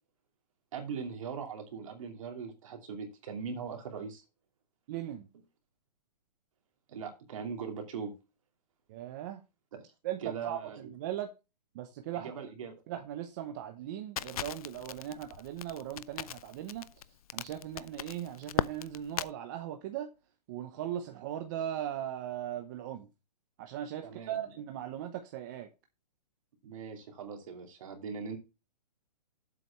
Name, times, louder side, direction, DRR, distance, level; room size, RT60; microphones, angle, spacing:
voice 1, 0.7-4.2 6.9-8.1 10.2-10.8 12.1-12.7 24.0-24.4 26.6-28.4, right 6 dB, 50° right, 2.7 m, -40 dB
voice 2, 4.9-5.3 8.9-9.4 10.0-11.3 11.7-12.3 12.9-17.1 17.3-20.1 20.5-23.1 23.6-25.7, right 11 dB, 25° right, 0.7 m, -38 dB
Crackle, 14.2-19.3, left 10 dB, 60° left, 0.5 m, -37 dB
7.8 x 5.0 x 6.9 m
hypercardioid pair, 160°, 21 cm